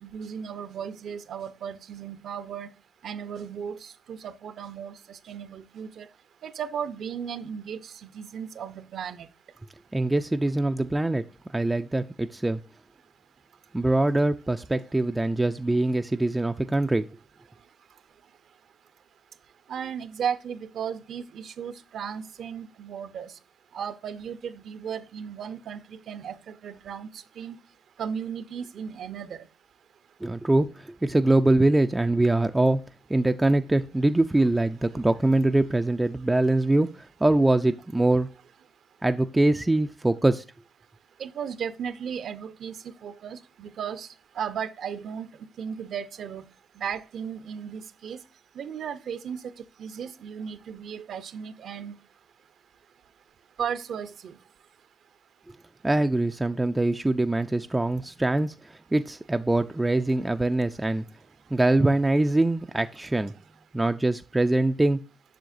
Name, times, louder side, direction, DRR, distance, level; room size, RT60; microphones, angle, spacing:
voice 1, 0.0-2.7 3.0-6.1 6.4-9.3 19.7-23.3 23.7-27.1 27.4-27.6 28.0-29.4 41.2-42.8 43.0-44.1 44.4-45.3 45.6-46.5 46.8-48.2 48.6-49.4 49.8-51.9 53.6-54.4, right 7 dB, 65° right, 0.7 m, -35 dB
voice 2, 9.9-11.2 11.5-12.6 13.7-17.1 30.2-32.8 33.1-38.3 39.0-40.4 55.8-61.0 61.5-63.3 63.7-65.0, right 2 dB, 15° right, 0.4 m, -23 dB
7.6 x 6.3 x 2.5 m
cardioid pair, 90°, 0 cm